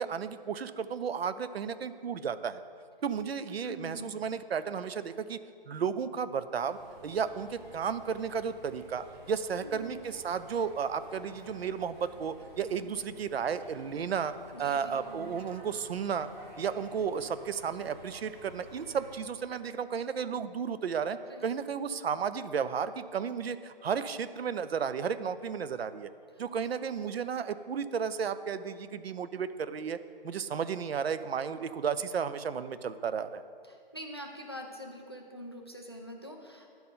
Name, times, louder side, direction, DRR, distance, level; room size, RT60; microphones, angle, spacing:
voice 1, 0.0-2.6 3.0-5.4 5.7-6.8 7.0-14.3 14.6-16.3 16.6-26.1 26.4-30.0 30.2-33.4, right 7 dB, 90° right, 13 dB, 0.6 m, -33 dB
voice 2, 3.6-4.1 9.5-10.1 12.8-12.9 14.5-15.3 21.3-21.4 22.0-22.2 26.3-26.4 33.6-36.7, left 1 dB, 25° left, 2 dB, 0.4 m, -45 dB
sound 1, 6.7-19.2, right 1 dB, 55° right, 1.9 m, -52 dB
10.5 x 4.4 x 5.5 m, 2.2 s
hypercardioid pair, 170°, 30 cm